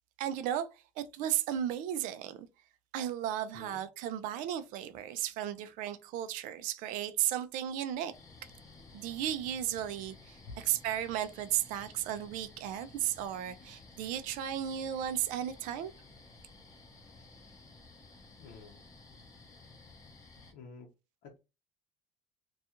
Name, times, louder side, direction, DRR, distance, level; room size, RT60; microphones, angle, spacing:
voice 1, 0.2-0.7 1.0-2.5 2.9-8.1 8.9-15.9, right 11 dB, 70° right, 0.4 m, -34 dB
sound 1, 8.1-20.5, left 3 dB, 25° left, 0.7 m, -55 dB
voice 2, 18.4-18.8 20.5-20.9 21.2-21.4, left 4 dB, 70° left, 0.7 m, -49 dB
2.3 x 2.3 x 2.8 m
cardioid pair, 120°, 14 cm